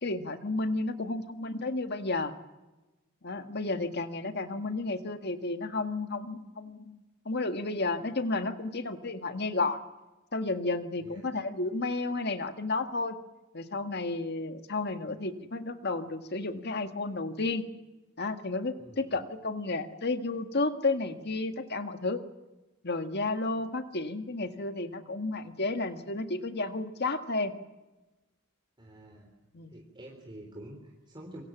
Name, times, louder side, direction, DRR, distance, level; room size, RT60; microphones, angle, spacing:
voice 1, 0.0-2.3 3.2-7.0 7.3-9.8 10.3-13.2 13.5-17.7 18.2-22.2 22.8-27.5 29.5-29.7, left 3 dB, 55° left, 7 dB, 1.8 m, -32 dB
voice 2, 18.8-19.2 28.8-29.3 29.7-31.4, right 1 dB, 25° right, 1 dB, 3.7 m, -47 dB
26.5 x 24.0 x 7.4 m, 1.1 s
head